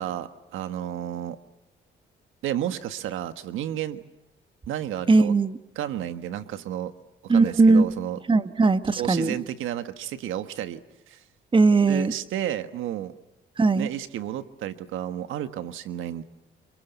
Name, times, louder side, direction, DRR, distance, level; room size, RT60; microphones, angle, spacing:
voice 1, 0.0-1.4 2.4-4.0 4.7-5.3 5.7-6.9 7.2-8.2 9.0-10.8 11.1-11.2 11.9-13.1 13.8-16.2, right 11 dB, 85° right, 11 dB, 1.5 m, -31 dB
voice 2, 5.1-5.6 7.3-7.8 8.3-9.3 11.5-12.1 13.6-13.9, right 3 dB, 25° right, 11 dB, 1.3 m, -19 dB
27.5 x 23.5 x 8.2 m, 0.93 s
cardioid pair, 90°, 20 cm